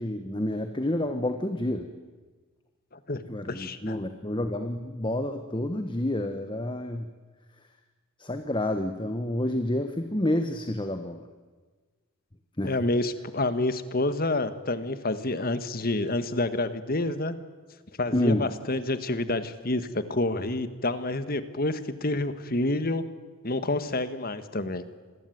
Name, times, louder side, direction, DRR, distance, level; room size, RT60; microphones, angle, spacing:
voice 1, 0.0-1.9 3.3-7.1 8.2-11.2 12.6-12.8 18.1-18.5, left 1 dB, 20° left, 7 dB, 1.2 m, -29 dB
voice 2, 3.5-4.0 12.6-17.3 18.0-23.0 23.4-24.8, left 2 dB, 45° left, 11 dB, 1.6 m, -28 dB
27.0 x 21.0 x 9.4 m, 1.4 s
head